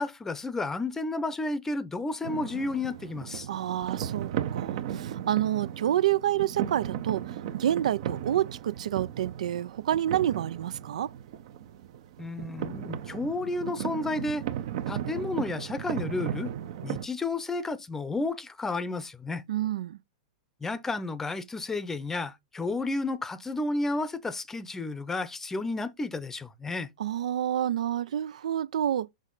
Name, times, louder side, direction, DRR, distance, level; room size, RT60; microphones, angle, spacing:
voice 1, 0.0-3.5 12.2-14.4 14.9-16.5 16.8-19.4 20.6-26.9, left 3 dB, 10° left, 0.7 m, -32 dB
sound 1, 2.2-17.1, right 10 dB, 60° right, 0.8 m, -36 dB
voice 2, 3.5-11.1 19.5-20.0 27.0-29.1, right 11 dB, 80° right, 0.4 m, -28 dB
6.4 x 4.9 x 3.9 m
hypercardioid pair, 135°, 4 cm